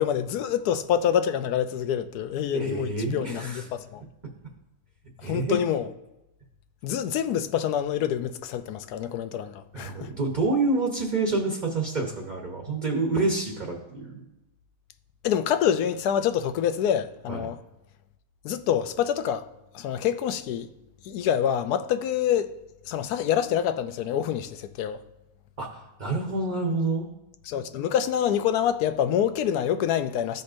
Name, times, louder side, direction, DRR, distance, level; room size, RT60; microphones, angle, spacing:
voice 1, 0.0-4.0 5.2-5.9 6.8-10.1 15.2-17.6 18.4-19.5 19.7-20.7 21.0-22.5 22.9-25.0 27.5-30.4, left 9 dB, 90° left, 1.1 m, -26 dB
voice 2, 2.5-3.6 5.2-5.6 9.7-14.2 17.3-17.5 25.6-27.1, right 3 dB, 35° right, 0.9 m, -28 dB
14.0 x 5.3 x 2.5 m
omnidirectional pair, 1.6 m